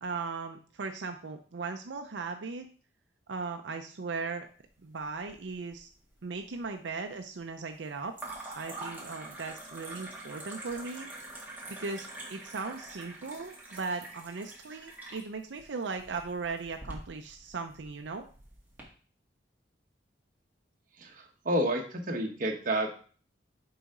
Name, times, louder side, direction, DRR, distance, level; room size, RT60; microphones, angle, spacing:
voice 1, 0.0-2.7 3.3-4.5 4.8-5.9 6.2-8.1 8.5-11.1 11.7-18.3, right 4 dB, 85° right, 5 dB, 0.6 m, -38 dB
sound 1, 5.0-5.8 6.0-6.7 8.1-18.8, right 2 dB, 10° right, 1.8 m, -45 dB
voice 2, 21.0-23.1, right 1 dB, 50° right, 3 dB, 1.1 m, -30 dB
7.0 x 4.9 x 3.7 m, 0.42 s
head